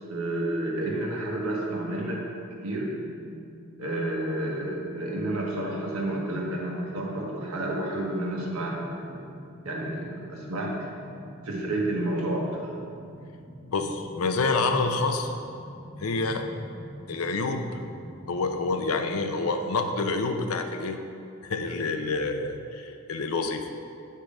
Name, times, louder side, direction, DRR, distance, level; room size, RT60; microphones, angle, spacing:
voice 1, 0.1-2.2 2.6-2.9 3.8-9.2 9.6-10.9 11.4-12.6, right 1 dB, 90° right, -3 dB, 1.2 m, -30 dB
sound 1, 2.3-19.5, equal, 40° right, 0.9 m, -46 dB
voice 2, 13.7-15.3 16.0-16.5 17.1-17.8 18.3-21.0 21.4-23.7, left 3 dB, 80° left, 6 dB, 0.5 m, -27 dB
7.8 x 3.7 x 5.0 m, 2.5 s
head